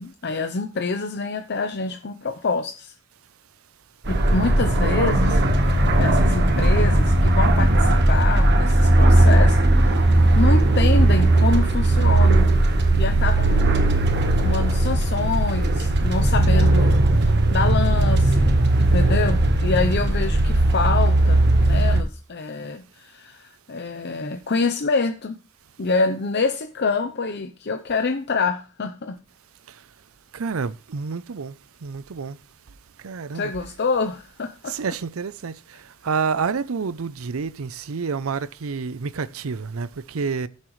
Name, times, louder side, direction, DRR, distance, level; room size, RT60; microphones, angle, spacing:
voice 1, 0.0-2.9 4.1-13.8 14.4-25.4 25.8-29.2 33.3-34.7, left 4 dB, 55° left, 0.7 m, -26 dB
sound 1, 4.1-22.0, right 1 dB, 55° right, 1.3 m, -18 dB
voice 2, 30.3-31.5 31.8-32.4 33.0-33.4 34.7-35.5 36.0-40.5, right 5 dB, 85° right, 0.6 m, -28 dB
15.0 x 7.4 x 3.2 m
head